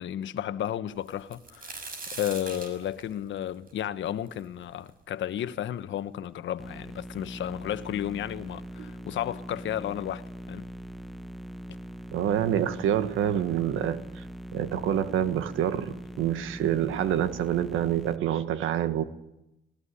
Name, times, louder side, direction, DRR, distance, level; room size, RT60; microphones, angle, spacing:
voice 1, 0.0-10.7, left 11 dB, 70° left, 1.2 m, -33 dB
sound 1, 1.1-4.9 5.4-5.5 6.3-6.4 6.6-7.3 8.2-8.3 8.7-8.9, right 3 dB, 45° right, 5.9 m, -42 dB
sound 2, 6.6-18.2, equal, ahead, 1.3 m, -41 dB
voice 2, 12.1-14.2 14.5-19.0, right 10 dB, 85° right, 1.6 m, -27 dB
20.0 x 19.0 x 10.0 m
cardioid pair, 90°, 20 cm